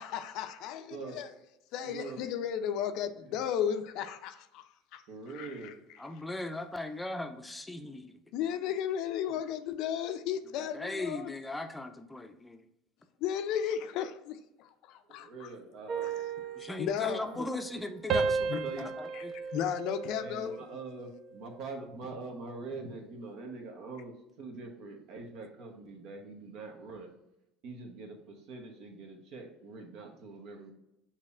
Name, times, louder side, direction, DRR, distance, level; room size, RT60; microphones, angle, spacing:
voice 1, 0.0-1.3 1.7-6.0 8.3-11.3 13.2-15.5 16.0-17.6 18.5-18.6 19.1-19.2 19.5-20.7, left 9 dB, 60° left, 0.4 m, -35 dB
voice 2, 1.8-2.2 5.1-5.7 15.2-16.1 17.0-17.3 17.7-17.8 18.6-18.9 20.2-27.1 27.6-30.7, right 3 dB, 60° right, 1.1 m, -44 dB
voice 3, 6.0-8.2 10.6-12.6 16.6-19.4, left 2 dB, 10° left, 0.5 m, -38 dB
sound 1, 15.9-17.8 18.1-20.7 21.1-21.5, right 5 dB, 45° right, 0.5 m, -35 dB
6.6 x 2.9 x 2.5 m
hypercardioid pair, 75°, 0 cm